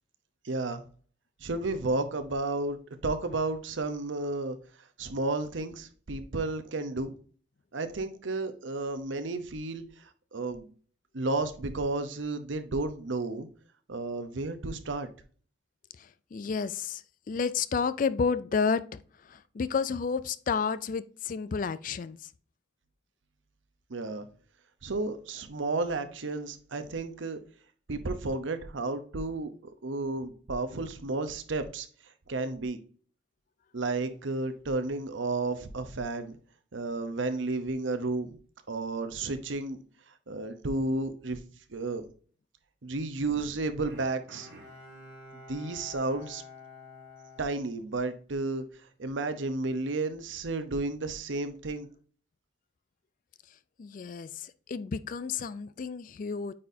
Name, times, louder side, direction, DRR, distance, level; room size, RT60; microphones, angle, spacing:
voice 1, 0.4-0.8 1.4-4.6 5.0-7.1 7.7-9.8 10.3-10.7 11.1-13.5 13.9-15.1 23.9-24.2 24.8-27.4 27.9-29.5 29.8-31.9 32.3-32.8 33.7-36.4 36.7-38.4 38.7-39.8 40.3-41.4 41.7-42.0 42.8-44.5 45.5-46.4 47.4-48.6 49.0-51.9, right 2 dB, 80° right, 0.8 m, -32 dB
voice 2, 16.3-17.0 17.3-19.0 19.3-22.2 53.8-56.5, left 5 dB, 45° left, 0.3 m, -31 dB
Bowed string instrument, 43.9-48.4 48.8-48.9, left 3 dB, 60° right, 1.7 m, -49 dB
8.6 x 4.2 x 2.7 m
head